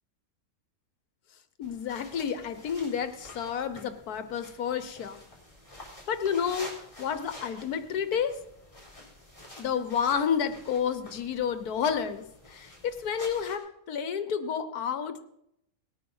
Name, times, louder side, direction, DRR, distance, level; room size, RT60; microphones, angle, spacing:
voice 1, 1.6-5.2 6.1-6.7 7.0-8.4 9.6-15.2, left 7 dB, 80° left, 11 dB, 1.6 m, -30 dB
sound 1, 1.6-13.6, left 1 dB, 20° left, 4.1 m, -49 dB
19.0 x 9.2 x 5.5 m, 0.79 s
omnidirectional pair, 1.6 m